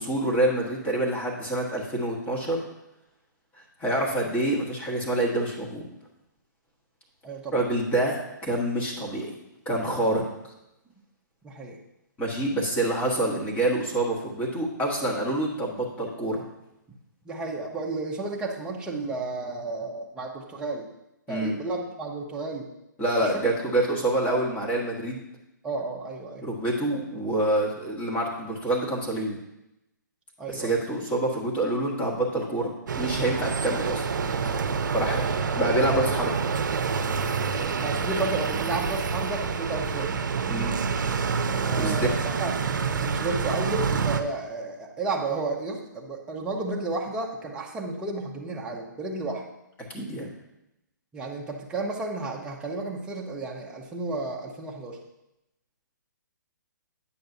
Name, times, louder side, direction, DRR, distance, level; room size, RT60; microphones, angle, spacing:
voice 1, 0.0-2.6 3.8-5.8 7.5-9.4 9.6-10.2 12.2-16.4 21.3-21.5 23.0-25.2 26.4-29.4 30.5-34.0 34.9-35.2 35.5-36.4 40.5-40.7 41.8-42.1 49.9-50.3, right 1 dB, 15° left, -3 dB, 1.3 m, -26 dB
voice 2, 7.2-7.6 11.4-11.8 17.2-20.9 21.3-22.7 23.2-23.4 25.6-26.4 30.4-30.7 37.8-40.1 41.7-42.5 42.8-49.4 51.1-55.0, right 3 dB, 10° right, -2 dB, 0.7 m, -32 dB
sound 1, 32.9-44.2, right 5 dB, 70° right, 0.6 m, -27 dB
8.7 x 6.7 x 2.7 m, 0.89 s
hypercardioid pair, 150°, 11 cm